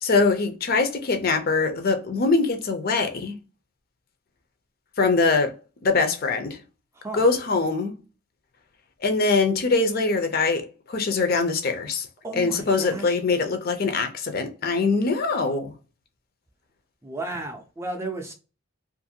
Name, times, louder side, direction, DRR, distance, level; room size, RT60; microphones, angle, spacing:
voice 1, 0.0-3.4 5.0-5.5 5.8-6.6 7.1-8.0 9.0-12.1 12.3-15.7, left 3 dB, 45° left, 0.5 m, -23 dB
voice 2, 12.2-13.2 17.0-18.3, right 2 dB, 10° right, 0.4 m, -34 dB
2.5 x 2.5 x 2.7 m
head